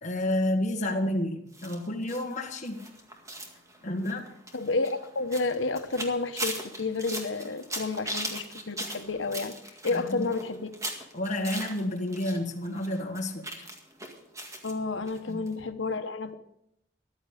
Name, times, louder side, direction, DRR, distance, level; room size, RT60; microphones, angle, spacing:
voice 1, 0.0-2.9 3.8-4.3 9.9-10.3 11.1-13.7 15.3-15.4, left 1 dB, 40° left, 1 dB, 1.6 m, -30 dB
sound 1, 1.5-12.4 12.6-14.7 15.1-15.2 15.5-15.6, right 1 dB, 15° right, 2.0 m, -39 dB
voice 2, 4.5-10.7 14.6-16.4, left 3 dB, 85° left, 9 dB, 1.1 m, -31 dB
14.5 x 11.5 x 5.0 m, 0.77 s
head